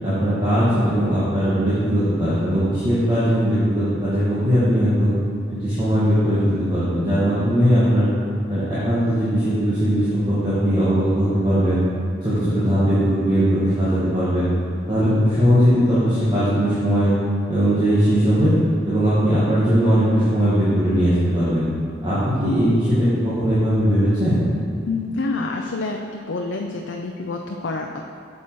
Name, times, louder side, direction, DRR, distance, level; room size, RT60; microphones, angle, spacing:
voice 1, 0.0-5.1 5.5-8.1 8.5-11.8 12.2-14.5 14.9-17.1 17.5-18.5 18.8-21.7 22.0-24.4, equal, 25° right, -12 dB, 1.7 m, -19 dB
voice 2, 24.8-28.0, left 3 dB, 85° left, 2 dB, 0.5 m, -27 dB
7.4 x 7.3 x 4.7 m, 2.4 s
head